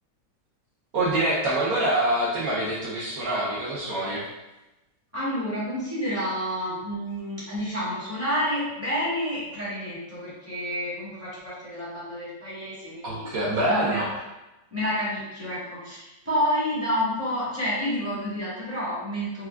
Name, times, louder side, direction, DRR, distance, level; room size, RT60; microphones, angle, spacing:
voice 1, 0.9-4.2 13.0-14.1, right 1 dB, 65° right, -6 dB, 1.0 m, -25 dB
voice 2, 5.1-14.0 14.7-19.5, equal, 10° right, -10 dB, 0.9 m, -29 dB
4.5 x 2.3 x 2.3 m, 0.99 s
omnidirectional pair, 1.9 m